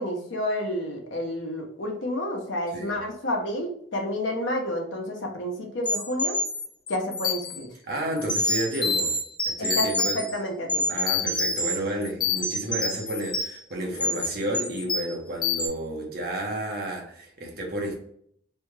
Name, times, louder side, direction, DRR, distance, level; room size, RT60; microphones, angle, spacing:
voice 1, 0.0-6.4 6.9-7.7 9.6-10.9, equal, 90° left, 1 dB, 0.9 m, -30 dB
sound 1, 5.9-7.6 8.2-10.3 10.7-11.8 12.0-13.6 13.9-14.3 14.5-15.2 15.4-15.7, left 3 dB, 25° left, 0.6 m, -27 dB
voice 2, 7.9-9.1 9.4-10.2 10.9-18.0, right 1 dB, 55° right, 0 dB, 1.0 m, -31 dB
3.4 x 2.3 x 3.2 m, 0.64 s
head